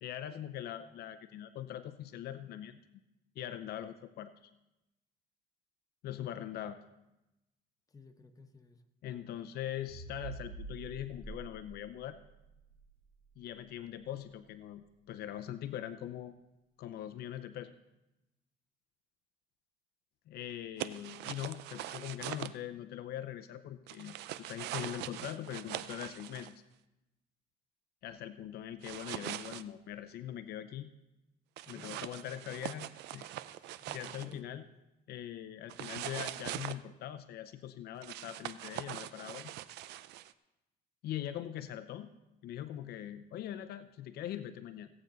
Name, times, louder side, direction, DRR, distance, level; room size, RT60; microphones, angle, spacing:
voice 1, 0.0-2.8 3.4-4.5 6.0-6.8 9.0-12.2 13.4-16.3 16.8-17.7 20.3-26.6 28.0-30.9 31.7-33.3 33.9-34.6 35.1-39.5 41.0-42.1 42.4-44.9, left 11 dB, 70° left, 11 dB, 0.6 m, -42 dB
voice 2, 7.9-8.8 31.6-32.5 33.5-34.9, left 3 dB, 20° left, 6 dB, 1.0 m, -56 dB
sound 1, 9.9-14.4, right 4 dB, 65° right, 4.5 m, -48 dB
sound 2, 20.8-22.5 23.9-26.5 28.8-29.6 31.6-34.4 35.7-36.8 38.0-40.3, right 14 dB, 85° right, 0.5 m, -42 dB
16.5 x 8.8 x 4.0 m, 0.95 s
cardioid pair, 110°, 17 cm